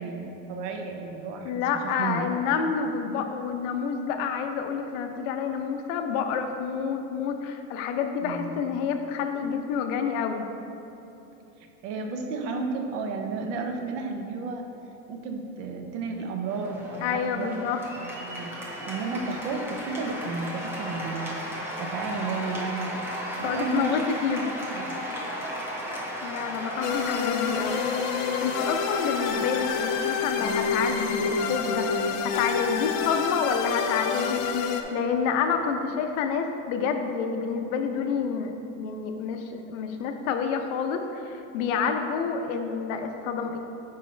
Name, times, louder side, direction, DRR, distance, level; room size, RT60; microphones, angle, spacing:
voice 1, 0.0-1.7 2.0-2.2 8.2-8.6 11.6-14.7 15.1-17.6 18.0-18.5 18.8-23.1 23.4-24.1 24.7-25.0, right 4 dB, 75° right, 4 dB, 0.9 m, -33 dB
voice 2, 1.4-10.5 17.0-17.8 23.4-24.4 26.2-43.6, left 6 dB, 85° left, 5 dB, 0.7 m, -29 dB
Cheering / Applause, 16.5-35.7, equal, 5° right, 0.5 m, -36 dB
sound 1, 26.8-34.8, left 6 dB, 50° left, 0.5 m, -28 dB
9.2 x 4.2 x 3.2 m, 3.0 s
cardioid pair, 170°, 37 cm